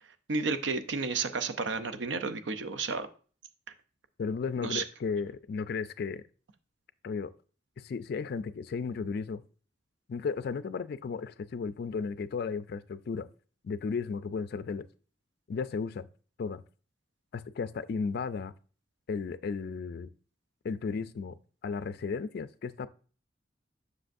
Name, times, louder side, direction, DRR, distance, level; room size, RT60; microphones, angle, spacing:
voice 1, 0.3-3.1 4.6-4.8, right 4 dB, 75° right, 0.6 m, -32 dB
voice 2, 4.2-6.2 7.0-7.3 7.8-9.4 10.1-13.3 13.6-14.9 15.5-16.1 16.4-16.6 17.3-18.5 19.1-20.1 20.6-21.4 21.6-22.9, left 5 dB, 55° left, 0.3 m, -34 dB
7.6 x 6.3 x 2.6 m
head